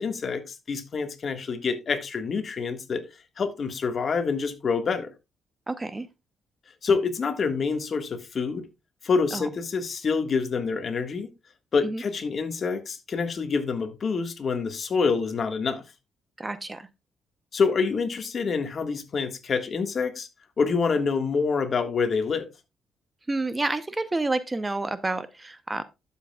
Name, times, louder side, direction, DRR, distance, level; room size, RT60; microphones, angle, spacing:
voice 1, 0.0-3.0 3.4-5.1 6.8-8.6 9.0-11.3 11.7-15.8 17.5-20.3 20.6-22.5, left 5 dB, 45° left, 1.6 m, -26 dB
voice 2, 5.7-6.1 9.3-9.5 11.8-12.0 16.4-16.9 23.3-25.8, right 2 dB, 20° right, 0.7 m, -29 dB
12.0 x 7.4 x 2.3 m
cardioid pair, 90°, 0 cm